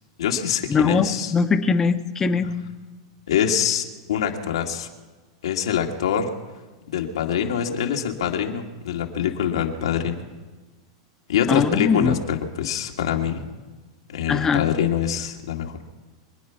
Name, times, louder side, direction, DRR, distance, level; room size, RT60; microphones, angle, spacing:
voice 1, 0.2-1.3 3.3-4.9 5.4-6.3 6.9-10.3 11.3-13.4 14.1-15.8, left 8 dB, 90° left, 2 dB, 2.1 m, -24 dB
voice 2, 0.7-2.5 11.5-12.1 14.3-14.7, left 5 dB, 20° left, 9 dB, 1.0 m, -21 dB
25.0 x 9.7 x 5.9 m, 1.3 s
supercardioid pair, 135°, 3 cm